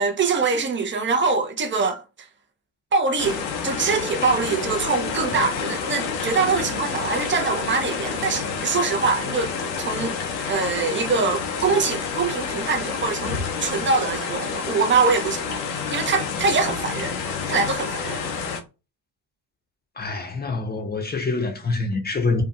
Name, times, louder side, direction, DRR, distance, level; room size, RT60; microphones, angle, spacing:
voice 1, 0.0-2.0 2.9-15.6 15.9-17.1 17.5-18.2, right 4 dB, 25° right, 0.6 m, -24 dB
sound 1, 3.2-18.6, left 5 dB, 80° left, 0.7 m, -29 dB
voice 2, 20.0-22.4, left 3 dB, 20° left, 0.8 m, -25 dB
2.7 x 2.5 x 2.3 m
hypercardioid pair, 55°, 50 cm